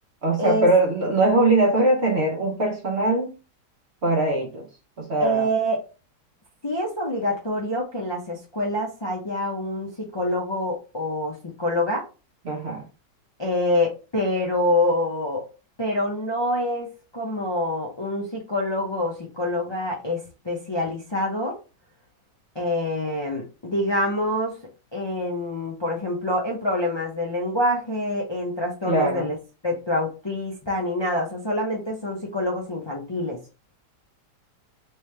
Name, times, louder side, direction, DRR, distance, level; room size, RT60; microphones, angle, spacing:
voice 1, 0.2-3.3 4.0-4.6 5.0-5.5 12.4-12.8 28.9-29.3, right 2 dB, 50° right, 1 dB, 0.8 m, -21 dB
voice 2, 5.2-5.8 6.6-12.0 13.4-15.4 15.8-16.9 17.1-20.2 20.4-21.6 22.5-24.5 24.9-29.4 29.6-33.4, left 1 dB, 40° left, -2 dB, 0.3 m, -26 dB
3.4 x 3.1 x 3.3 m, 0.32 s
omnidirectional pair, 1.9 m